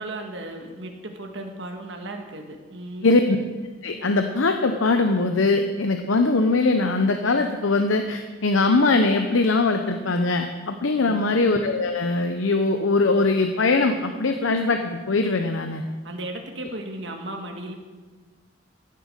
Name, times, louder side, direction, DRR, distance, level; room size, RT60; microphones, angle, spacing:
voice 1, 0.0-3.2 10.9-11.3 16.0-17.7, right 1 dB, 65° right, 3 dB, 1.6 m, -35 dB
voice 2, 3.0-3.4 3.8-15.8, left 3 dB, 85° left, 6 dB, 0.8 m, -21 dB
14.5 x 7.7 x 6.6 m, 1.3 s
head